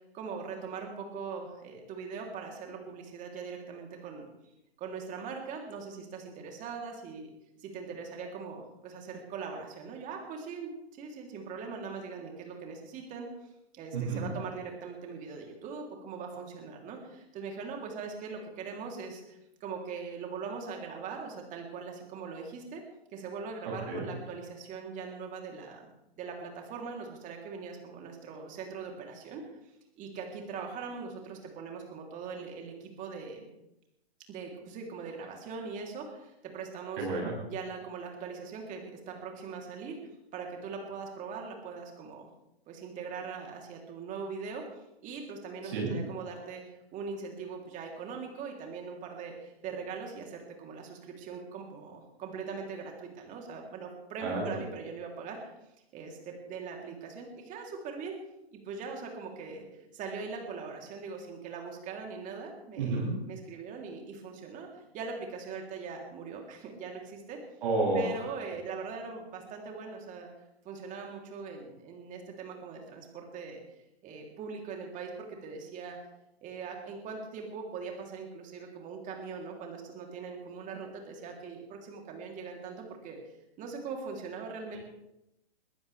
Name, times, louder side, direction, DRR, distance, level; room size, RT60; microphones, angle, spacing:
voice 1, 0.1-4.3 4.8-7.3 7.6-13.3 13.7-22.8 23.1-25.9 26.2-29.4 30.0-33.5 34.3-37.1 37.5-40.0 40.3-42.3 42.7-55.6 55.9-58.1 58.5-59.7 59.9-67.4 68.0-70.3 70.7-73.6 74.0-76.0 76.4-83.2 83.6-84.8, right 5 dB, 25° right, 1 dB, 3.4 m, -41 dB
voice 2, 13.9-14.3 23.9-24.0 37.0-37.3 45.6-45.9 54.2-54.5 62.8-63.1 67.6-68.1, right 3 dB, 55° right, -6 dB, 7.4 m, -30 dB
22.5 x 15.0 x 3.5 m, 0.87 s
hypercardioid pair, 130°, 32 cm